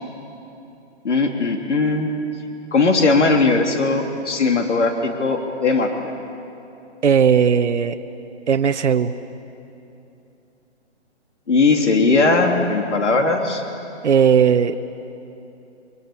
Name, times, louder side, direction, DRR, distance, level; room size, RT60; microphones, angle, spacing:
voice 1, 1.0-2.1 2.7-6.1 11.5-13.6, left 3 dB, 80° left, 3 dB, 2.8 m, -18 dB
voice 2, 7.0-7.9 8.5-9.1 14.0-14.8, right 7 dB, 80° right, 9 dB, 1.1 m, -16 dB
29.5 x 23.5 x 8.5 m, 2.8 s
hypercardioid pair, 175°, 35 cm